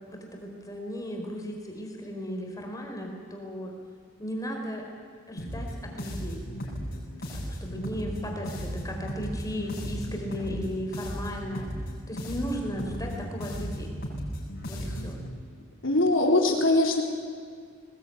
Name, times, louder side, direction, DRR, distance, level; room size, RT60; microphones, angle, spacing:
voice 1, 0.1-3.7 4.2-4.9 5.3-6.4 7.3-11.7 12.1-13.9 14.7-15.2, equal, 20° left, 1 dB, 4.7 m, -36 dB
sound 1, 5.4-15.3, equal, 50° left, 7.3 m, -35 dB
voice 2, 15.8-17.0, left 2 dB, 70° left, 1 dB, 4.1 m, -22 dB
21.0 x 20.5 x 9.6 m, 2.1 s
head